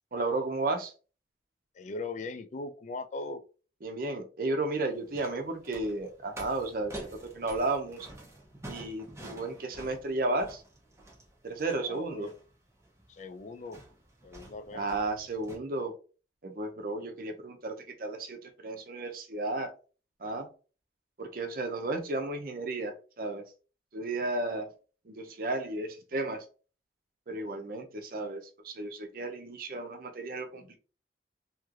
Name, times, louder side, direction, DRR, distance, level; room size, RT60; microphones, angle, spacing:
voice 1, 0.1-0.9 3.8-6.9 7.3-8.1 8.7-10.6 11.4-12.3 14.7-15.9 16.4-19.7 20.2-20.5 21.2-23.4 23.9-24.7 25.1-26.5 27.3-30.8, right 2 dB, 55° right, 5 dB, 0.6 m, -33 dB
voice 2, 1.7-3.4 11.8-12.3 13.1-13.8 14.2-14.9, left 3 dB, 45° left, 11 dB, 0.3 m, -39 dB
sound 1, 4.9-15.6, right 1 dB, 15° right, 0.7 m, -48 dB
3.1 x 2.9 x 2.4 m, 0.36 s
head